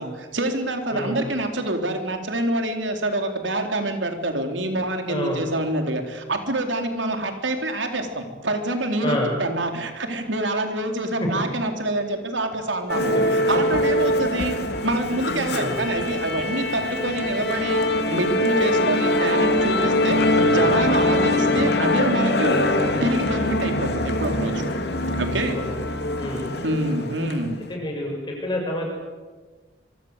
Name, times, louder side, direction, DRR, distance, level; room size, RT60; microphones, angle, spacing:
voice 1, 0.0-17.8 18.1-22.6 23.0-24.6 25.2-25.6 26.6-27.6, right 1 dB, 85° right, 5 dB, 4.0 m, -26 dB
voice 2, 5.1-5.4 9.0-9.3 13.1-13.2 15.5-15.8 25.5-25.7 26.2-26.5 27.7-28.9, left 1 dB, 25° left, 0 dB, 7.0 m, -28 dB
Musical instrument, 12.9-27.6, left 1 dB, 60° left, 2.6 m, -23 dB
25.5 x 23.5 x 8.2 m, 1.3 s
head